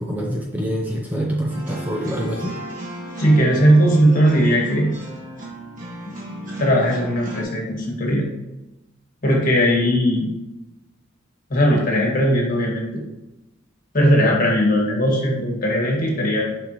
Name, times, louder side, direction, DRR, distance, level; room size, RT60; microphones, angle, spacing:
voice 1, 0.0-2.6, equal, 10° right, -2 dB, 0.7 m, -25 dB
sound 1, 1.5-7.4, right 1 dB, 40° right, 1.6 m, -35 dB
voice 2, 3.2-5.0 6.0-6.2 6.6-8.2 9.2-10.3 11.5-12.9 13.9-16.4, equal, 45° left, -1 dB, 1.8 m, -18 dB
7.1 x 5.5 x 3.0 m, 0.99 s
head